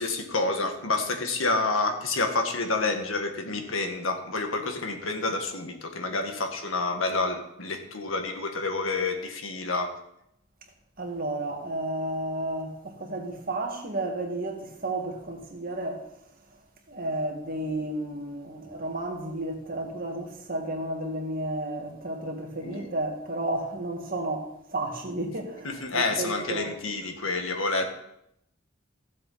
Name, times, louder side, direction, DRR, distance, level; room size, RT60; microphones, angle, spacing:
voice 1, 0.0-9.9 22.6-22.9 25.6-27.9, left 3 dB, 85° left, 1.7 m, -28 dB
voice 2, 11.0-16.0 16.9-26.7, right 1 dB, 45° right, 2.1 m, -32 dB
15.5 x 7.5 x 4.2 m
head